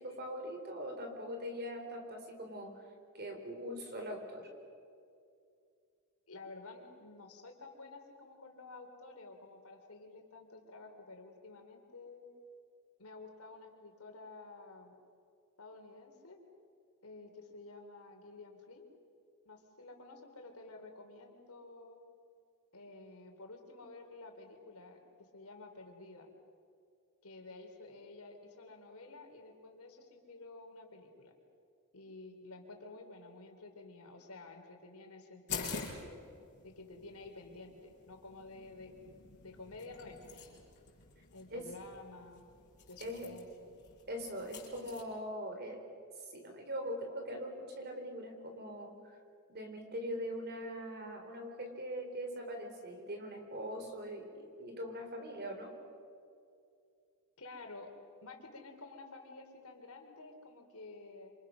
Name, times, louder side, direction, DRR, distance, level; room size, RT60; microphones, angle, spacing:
voice 1, 0.0-2.9 3.1-4.5 41.5-41.7 43.0-43.3 44.1-49.2 49.5-55.7, equal, 45° right, 4 dB, 4.2 m, -42 dB
voice 2, 6.3-12.3 13.0-14.9 15.6-16.4 17.0-18.9 19.4-22.0 22.7-26.3 27.2-31.3 31.9-36.2 36.6-40.6 41.3-42.4 42.9-43.7 57.4-57.9 58.2-61.3, left 3 dB, 75° left, 3 dB, 3.9 m, -51 dB
sound 1, 35.5-45.0, left 5 dB, 55° left, 6.3 m, -48 dB
27.5 x 27.5 x 6.4 m, 2.4 s
head